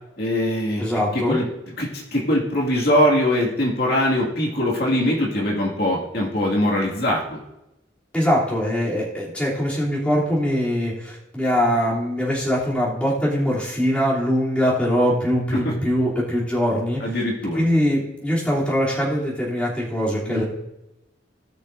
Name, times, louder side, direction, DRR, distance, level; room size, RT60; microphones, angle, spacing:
voice 1, 0.2-0.9 1.1-1.4 1.8-7.4 15.6-15.7 17.0-17.6 20.3-20.4, left 1 dB, 60° left, -3 dB, 2.2 m, -22 dB
voice 2, 0.8-1.4 8.1-17.2 17.5-20.4, equal, 5° left, -7 dB, 3.2 m, -22 dB
18.5 x 6.4 x 2.7 m, 0.89 s
head